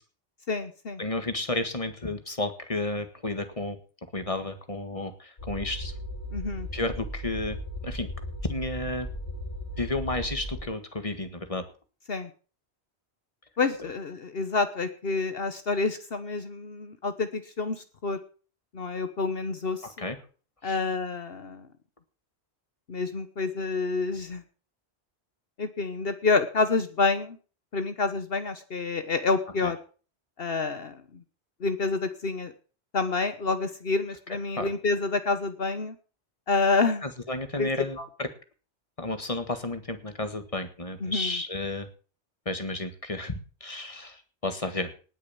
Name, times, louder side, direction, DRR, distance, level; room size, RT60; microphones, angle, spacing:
voice 1, 0.5-1.0 6.3-6.7 12.1-12.3 13.6-18.2 18.7-19.9 20.6-21.7 22.9-24.4 25.6-27.4 27.7-29.8 30.4-31.0 31.6-32.5 32.9-35.9 36.5-37.1 37.6-37.7 38.0-38.1 41.0-41.3, left 3 dB, 60° left, 10 dB, 1.3 m, -28 dB
voice 2, 1.0-3.8 4.1-5.9 6.7-7.6 7.8-8.1 8.4-9.1 9.8-11.6 19.8-20.2 20.6-20.8 29.6-29.7 34.5-34.7 37.0-38.3 39.0-41.9 42.4-44.9, left 2 dB, 30° left, 8 dB, 1.8 m, -32 dB
sound 1, 5.4-10.6, equal, 80° left, 4.6 m, -36 dB
19.0 x 6.6 x 7.1 m, 0.38 s
omnidirectional pair, 1.1 m